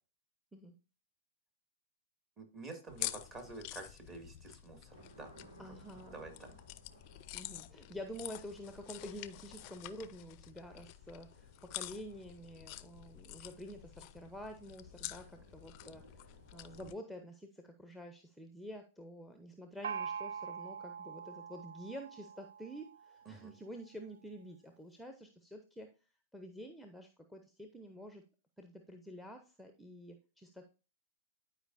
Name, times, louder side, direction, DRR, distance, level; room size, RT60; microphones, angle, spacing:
voice 1, 2.4-5.4 5.7-5.8 6.1-6.5 23.3-23.5, right 3 dB, 25° right, 4 dB, 2.0 m, -49 dB
sound 1, 2.9-17.0, left 16 dB, 45° left, 0.4 m, -48 dB
Thunder, 4.8-16.9, right 1 dB, 90° right, 3.7 m, -62 dB
voice 2, 5.6-6.2 7.3-25.9 26.3-28.2 28.6-30.6, equal, ahead, 6 dB, 0.7 m, -49 dB
Gong, 19.8-23.4, right 7 dB, 65° right, 0.4 m, -44 dB
11.5 x 4.8 x 2.6 m, 0.34 s
figure-of-eight pair, 105°, 0 cm